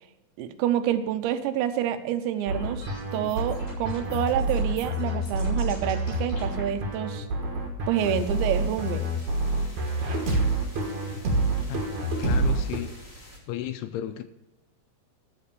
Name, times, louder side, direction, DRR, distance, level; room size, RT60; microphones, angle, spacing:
voice 1, 0.4-2.9 3.1-7.3 7.9-9.1, right 10 dB, 90° right, 10 dB, 3.0 m, -28 dB
sound 1, 2.3-6.6, left 2 dB, 45° left, 5.8 m, -43 dB
sound 2, 2.5-12.8, right 2 dB, 60° right, 2.2 m, -27 dB
sound 3, 7.9-13.4, left 1 dB, 15° left, 2.7 m, -47 dB
voice 2, 12.2-12.9 13.5-14.2, left 12 dB, 80° left, 10 dB, 2.5 m, -33 dB
13.0 x 5.2 x 6.7 m, 0.98 s
omnidirectional pair, 5.0 m